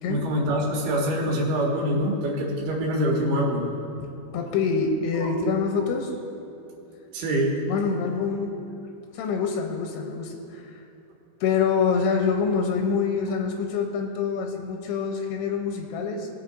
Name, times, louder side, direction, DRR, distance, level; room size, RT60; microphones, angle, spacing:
voice 1, 0.1-3.7 5.2-5.3 7.1-7.6, equal, 60° right, -4 dB, 2.7 m, -25 dB
voice 2, 4.3-6.2 7.7-8.7 9.1-10.8 11.4-16.3, left 5 dB, 90° left, 2 dB, 2.8 m, -26 dB
19.5 x 7.1 x 2.6 m, 2.9 s
omnidirectional pair, 4.7 m